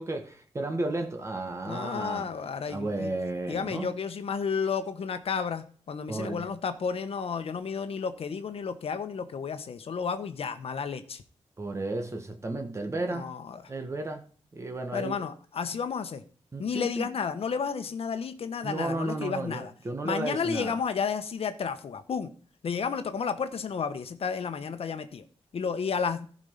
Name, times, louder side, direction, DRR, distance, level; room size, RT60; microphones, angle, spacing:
voice 1, 0.0-2.3 2.7-3.9 6.1-6.4 11.6-13.3 13.7-14.2 14.5-15.2 16.5-17.1 18.6-20.7, right 2 dB, 25° right, 1.3 m, -33 dB
voice 2, 1.7-3.1 3.5-11.2 13.1-13.7 14.9-16.2 16.6-19.7 20.0-22.3 22.6-25.2 25.5-26.3, left 6 dB, 65° left, 1.1 m, -32 dB
15.5 x 5.4 x 5.6 m
wide cardioid pair, 170°, 11 cm